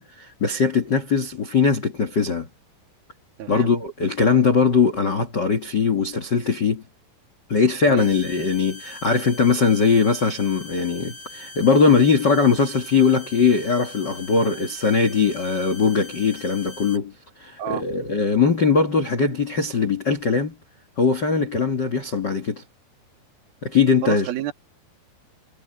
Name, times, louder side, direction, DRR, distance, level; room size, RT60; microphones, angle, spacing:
voice 1, 0.0-2.5 3.5-6.8 7.5-17.1 17.4-20.5 21.0-22.6 23.6-24.3, left 5 dB, 85° left, 0.9 m, -20 dB
voice 2, 3.4-3.7 7.9-8.1 14.5-14.7 17.6-17.9 24.0-24.5, right 11 dB, 65° right, 3.3 m, -29 dB
sound 1, 8.0-17.0, left 2 dB, 70° left, 10.0 m, -41 dB
omnidirectional pair, 5.1 m